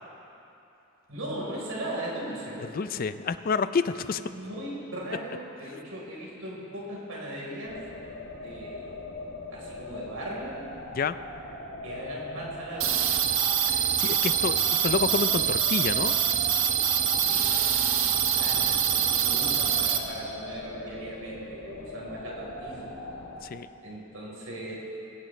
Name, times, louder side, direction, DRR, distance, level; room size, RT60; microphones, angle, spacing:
voice 1, 1.1-2.6 4.3-7.8 8.4-9.0 9.5-10.7 11.8-13.0 17.2-17.5 18.4-23.0 23.8-24.8, right 1 dB, 85° right, -4 dB, 4.0 m, -38 dB
voice 2, 2.7-4.2 11.0-11.2 13.7-16.1 23.4-23.7, left 5 dB, 45° left, 12 dB, 0.4 m, -29 dB
sound 1, 7.7-23.4, left 2 dB, 85° left, 1.8 m, -40 dB
sound 2, 12.8-20.0, right 9 dB, 65° right, 1.0 m, -25 dB
19.5 x 16.5 x 3.2 m, 2.9 s
head